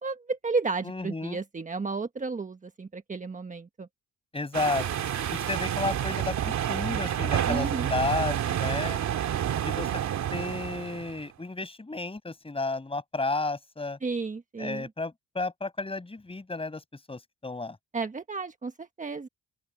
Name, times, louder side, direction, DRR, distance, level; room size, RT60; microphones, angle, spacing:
voice 1, 0.0-3.9 7.5-7.9 14.0-14.8 17.9-19.3, right 4 dB, 25° right, 1.4 m, -32 dB
voice 2, 0.8-1.4 4.3-4.9 5.3-9.0 9.6-9.9 10.3-14.0 14.6-16.8 17.1-17.8, left 3 dB, 20° left, 5.9 m, -32 dB
sound 1, 4.5-11.2, right 10 dB, 65° right, 2.3 m, -29 dB
open air
cardioid pair, 90°, 30 cm